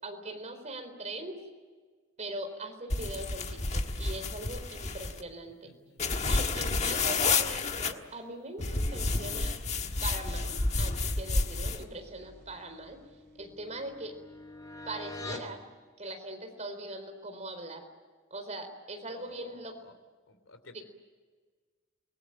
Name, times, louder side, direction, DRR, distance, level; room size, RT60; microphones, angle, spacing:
voice 1, 0.0-1.4 2.2-3.5 3.7-5.7 6.3-8.6 8.9-9.6 10.0-13.0 13.3-14.1 14.9-15.6 16.0-17.9 18.3-19.8 20.7-20.8, right 2 dB, 35° right, 5 dB, 4.2 m, -41 dB
sound 1, 2.9-5.2 6.0-7.9 8.6-11.8, left 3 dB, 35° left, 1.4 m, -30 dB
voice 2, 5.6-6.0 19.1-19.9 20.3-20.8, left 2 dB, 75° left, 9 dB, 3.0 m, -53 dB
sound 2, 8.6-14.1, equal, 55° right, 4.1 m, -49 dB
sound 3, 12.4-15.6, left 2 dB, 20° left, 2.6 m, -45 dB
28.5 x 19.5 x 9.0 m, 1.5 s
head